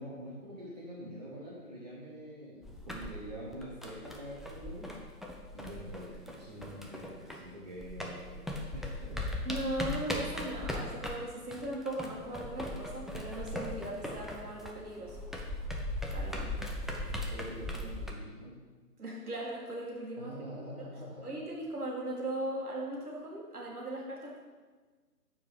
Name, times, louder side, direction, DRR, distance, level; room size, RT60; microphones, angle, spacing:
voice 1, 0.0-5.0 5.5-9.3 16.3-16.7 17.0-18.7 20.2-21.3, equal, 25° right, -7 dB, 1.1 m, -45 dB
sound 1, 2.6-7.5 7.8-18.1, left 1 dB, ahead, 0.4 m, -39 dB
voice 2, 9.4-15.2 16.1-16.5 19.0-20.3 21.2-24.4, right 1 dB, 65° right, -3 dB, 2.2 m, -38 dB
8.8 x 4.7 x 5.2 m, 1.4 s
figure-of-eight pair, 160°, 48 cm